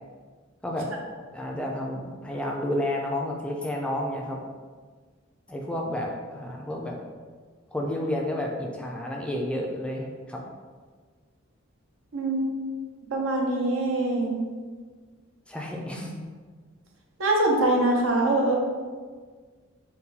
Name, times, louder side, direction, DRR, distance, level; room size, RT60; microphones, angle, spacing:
voice 1, 1.3-4.4 5.5-7.0 7.7-10.4 15.5-16.2, left 1 dB, 5° left, -1 dB, 0.3 m, -31 dB
voice 2, 12.1-12.5 13.1-14.4 17.2-18.5, right 2 dB, 80° right, 0 dB, 0.7 m, -23 dB
4.0 x 2.2 x 4.0 m, 1.5 s
head